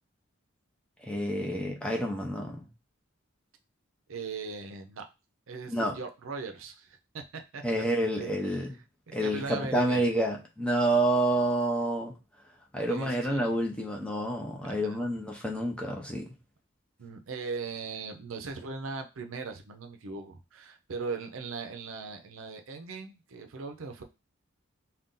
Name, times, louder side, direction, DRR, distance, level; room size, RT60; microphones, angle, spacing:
voice 1, 1.0-2.7 5.7-6.0 7.6-8.7 9.1-12.1 12.7-16.3, right 1 dB, 5° left, 0 dB, 0.6 m, -28 dB
voice 2, 4.1-5.1 5.5-7.8 8.2-8.7 9.1-10.0 12.9-13.5 14.6-15.0 17.0-24.0, right 4 dB, 80° right, 5 dB, 0.5 m, -39 dB
2.6 x 2.3 x 3.6 m, 0.27 s
head